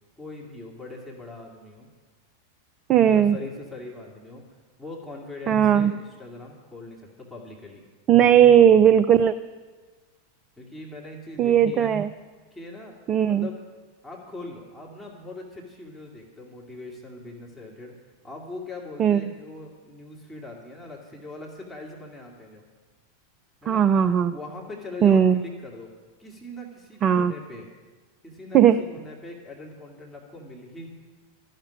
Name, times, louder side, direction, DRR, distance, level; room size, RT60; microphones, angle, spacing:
voice 1, 0.2-1.9 3.1-4.4 4.8-7.8 10.6-11.9 12.5-12.9 13.2-13.6 14.0-17.9 18.2-22.6 23.6-23.8 24.3-25.9 26.2-27.7 28.2-30.9, left 2 dB, 5° left, -3 dB, 2.4 m, -41 dB
voice 2, 2.9-3.4 5.5-5.9 8.1-9.3 11.4-12.1 13.1-13.5 19.0-19.2 23.7-24.3 25.0-25.4 27.0-27.3 28.5-28.8, right 9 dB, 30° right, 11 dB, 0.4 m, -17 dB
13.5 x 6.6 x 10.0 m, 1.4 s
figure-of-eight pair, 90°, 0 cm